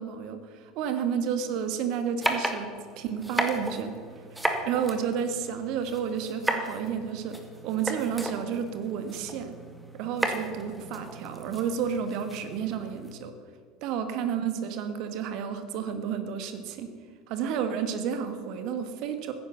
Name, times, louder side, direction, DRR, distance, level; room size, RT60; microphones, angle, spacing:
voice 1, 0.0-3.9 4.3-7.4 7.6-9.5 9.9-13.3 13.8-16.9 17.3-19.3, right 7 dB, 50° right, 9 dB, 1.6 m, -31 dB
sound 1, 2.2-13.1, right 1 dB, 5° right, 2.0 m, -34 dB
15.0 x 10.5 x 7.0 m, 2.1 s
figure-of-eight pair, 70°, 0 cm